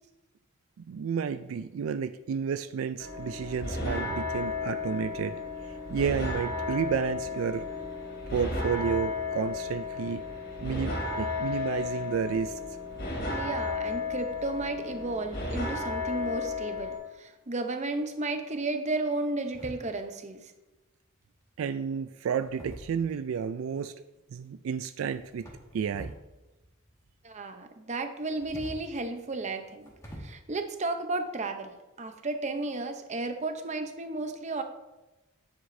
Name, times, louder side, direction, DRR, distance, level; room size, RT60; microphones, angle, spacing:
voice 1, 0.9-7.7 8.3-10.2 10.6-12.6 21.6-23.9 24.3-25.5 25.7-26.1, right 7 dB, 75° right, 11 dB, 0.3 m, -31 dB
sound 1, 3.0-17.0, left 3 dB, 55° left, 2.6 m, -33 dB
voice 2, 13.3-20.5 27.2-29.9 30.2-34.6, right 2 dB, 35° right, 7 dB, 0.7 m, -33 dB
sound 2, 19.5-20.2 21.2-21.6 22.3-23.4 25.0-26.3 26.5-27.4 28.2-30.2, right 1 dB, 15° left, 1.7 m, -46 dB
9.7 x 8.0 x 2.7 m, 1.0 s
head